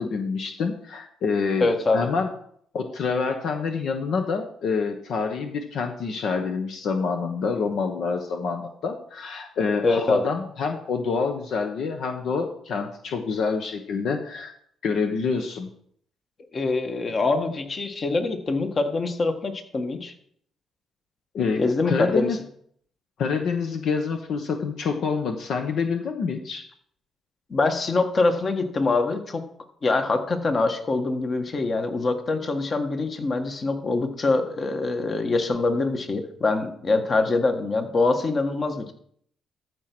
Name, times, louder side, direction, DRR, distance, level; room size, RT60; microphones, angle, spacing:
voice 1, 0.0-2.3 2.7-14.5 14.8-15.7 21.3-22.4 23.2-26.7, left 5 dB, 70° left, 5 dB, 1.0 m, -27 dB
voice 2, 1.6-2.0 9.8-10.2 16.5-20.1 21.6-22.3 27.5-29.4 29.8-38.9, left 3 dB, 40° left, 6 dB, 1.5 m, -24 dB
13.5 x 4.7 x 6.0 m, 0.65 s
cardioid pair, 90°, 0 cm